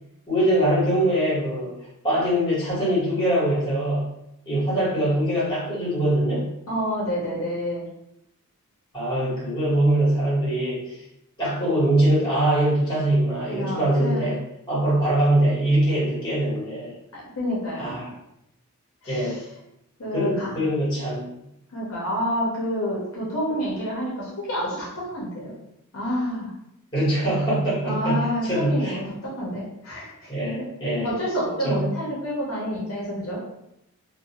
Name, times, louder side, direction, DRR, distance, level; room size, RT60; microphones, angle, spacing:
voice 1, 0.3-1.7 2.0-4.1 4.4-6.5 8.9-11.0 11.4-14.4 14.7-16.9 17.7-18.1 19.1-19.4 20.1-21.3 26.9-29.0 30.3-31.1 31.6-31.9, right 1 dB, 20° left, -8 dB, 1.3 m, -23 dB
voice 2, 6.7-7.8 13.5-14.3 17.1-18.0 19.0-19.4 20.0-20.6 21.7-25.5 25.9-26.5 27.8-30.3 30.6-30.7 31.0-33.4, equal, 65° left, -5 dB, 0.7 m, -28 dB
2.5 x 2.1 x 2.8 m, 0.83 s
head